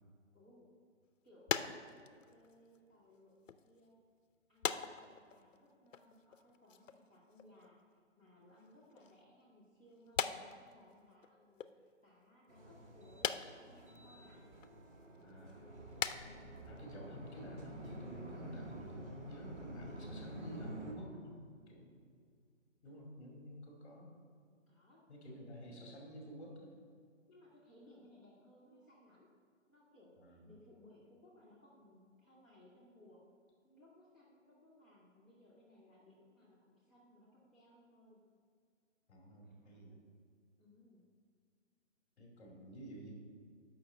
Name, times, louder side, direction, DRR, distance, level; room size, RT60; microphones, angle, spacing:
voice 1, 0.3-0.7 1.2-4.0 4.5-14.4 16.2-16.5 22.9-23.0 24.7-25.8 27.3-29.3 29.7-33.2 33.6-38.2 39.4-40.0 40.6-41.0, left 1 dB, 5° right, -10 dB, 0.6 m, -63 dB
sound 1, 1.5-3.2 3.5-3.8 4.6-5.6 5.9-7.0 7.3-7.7 8.6-9.2 10.1-11.3 11.6-11.7 13.2-14.0 14.6-14.7 15.1-15.5 15.9-16.3 16.5-16.8 17.0-17.2 17.9-18.0 18.4-18.5 18.7-18.8, left 7 dB, 75° left, 0.6 m, -40 dB
sound 2, 12.5-20.9, right 1 dB, 60° right, 2.1 m, -50 dB
voice 2, 15.2-15.7 16.7-21.4 21.7-21.9 22.8-24.1 25.1-26.7 30.2-30.5 39.1-40.0 42.2-43.1, equal, 25° left, -1 dB, 2.0 m, -51 dB
6.7 x 5.7 x 7.4 m, 2.1 s
hypercardioid pair, 165°, 38 cm